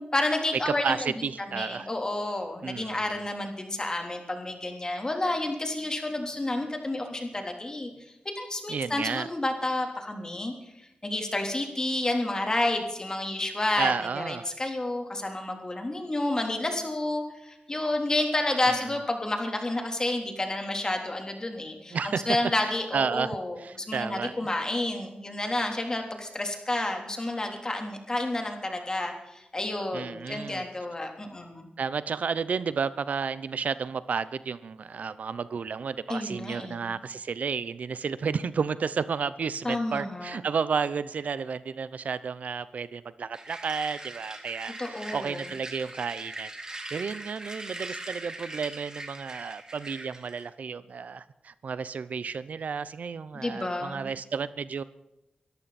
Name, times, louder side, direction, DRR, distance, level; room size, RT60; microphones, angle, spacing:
voice 1, 0.0-0.8 1.5-10.5 11.0-31.7 36.1-36.9 39.6-40.4 44.8-45.4 53.3-54.1, left 2 dB, 25° left, 3 dB, 3.6 m, -30 dB
voice 2, 0.7-1.9 2.6-3.2 8.7-9.3 13.8-14.5 18.6-19.0 21.9-22.4 22.6-24.3 29.9-30.6 31.8-54.8, right 5 dB, 75° right, 16 dB, 0.7 m, -32 dB
sound 1, 43.3-50.5, right 2 dB, 25° right, 2.6 m, -41 dB
23.5 x 14.0 x 4.3 m, 0.89 s
wide cardioid pair, 95°, 3 cm